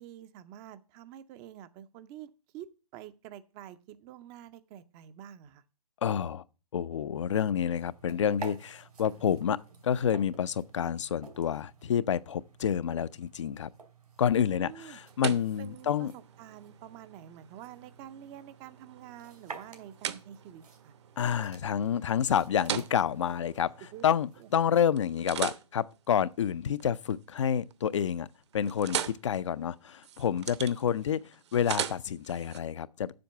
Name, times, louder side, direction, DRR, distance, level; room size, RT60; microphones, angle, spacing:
voice 1, 0.0-5.6 14.3-15.0 15.6-20.9 23.9-24.0 24.4-24.5, right 11 dB, 20° right, 0.5 m, -48 dB
voice 2, 6.0-6.4 6.7-13.7 14.2-16.1 21.2-23.7 24.0-28.3 28.5-31.2 31.5-33.1, left 8 dB, 50° left, 0.5 m, -29 dB
sound 1, 7.8-24.8, right 4 dB, 80° right, 2.9 m, -51 dB
sound 2, 14.5-24.5 25.0-27.2 27.6-28.0 28.3-32.6, right 9 dB, 45° right, 0.8 m, -40 dB
7.7 x 6.4 x 8.0 m
figure-of-eight pair, 135°, 20 cm